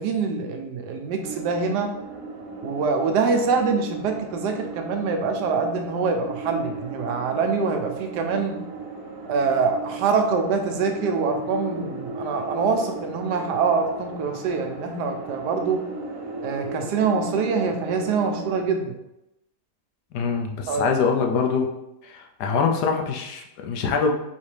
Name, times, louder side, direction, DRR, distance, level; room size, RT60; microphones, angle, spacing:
voice 1, 0.0-1.9 2.6-8.6 9.3-15.8 16.4-18.8 20.7-20.9, right 5 dB, 90° right, 4 dB, 1.3 m, -24 dB
sound 1, 1.2-18.6, right 3 dB, 65° right, 1.0 m, -36 dB
voice 2, 20.1-21.7 22.0-24.1, left 5 dB, 80° left, 3 dB, 1.2 m, -24 dB
4.1 x 3.6 x 3.3 m, 0.88 s
omnidirectional pair, 1.7 m